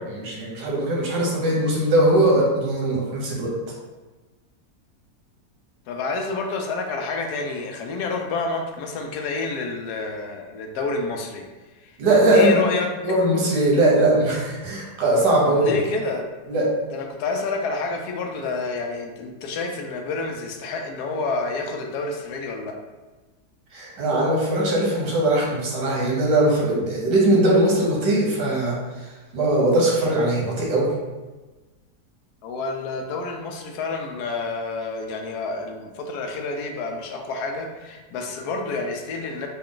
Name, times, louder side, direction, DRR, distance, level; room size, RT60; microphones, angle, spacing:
voice 1, 0.1-3.5 12.0-12.6 13.0-15.7 16.5-16.7 23.7-28.7 29.3-30.9, right 1 dB, 85° right, -3 dB, 1.6 m, -20 dB
voice 2, 5.9-11.4 11.8-11.9 12.3-12.9 15.6-16.3 16.9-22.8 32.4-39.5, left 3 dB, 75° left, 3 dB, 1.1 m, -29 dB
4.1 x 2.3 x 3.7 m, 1.2 s
omnidirectional pair, 1.7 m